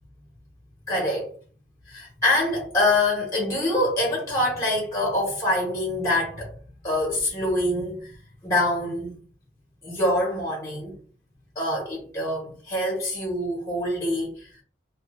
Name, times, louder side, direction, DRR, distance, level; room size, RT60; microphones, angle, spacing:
voice 1, 0.9-1.3 1.9-6.5 6.8-8.2 8.4-9.1 9.8-10.9 11.5-14.5, left 1 dB, 15° left, 0.9 m, -25 dB
2.5 x 2.4 x 2.4 m
head